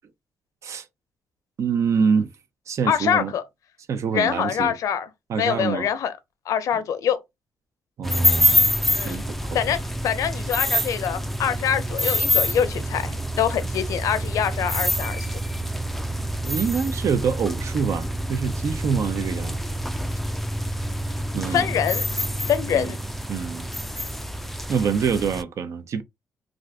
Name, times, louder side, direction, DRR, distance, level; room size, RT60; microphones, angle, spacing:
voice 1, 1.6-2.3 2.7-3.3 3.9-4.7 5.3-5.9 8.0-8.7 9.0-9.6 16.2-19.6 21.3-21.7 22.7-22.9 23.3-23.7 24.7-26.0, right 6 dB, 60° right, 0.5 m, -25 dB
voice 2, 2.8-3.4 4.1-5.1 5.3-6.1 6.5-7.2 8.9-9.2 9.5-15.4 21.5-22.1 22.5-23.0, left 8 dB, 75° left, 0.5 m, -24 dB
sound 1, 8.0-25.4, equal, 5° left, 0.3 m, -26 dB
2.4 x 2.4 x 3.3 m
cardioid pair, 90°, 6 cm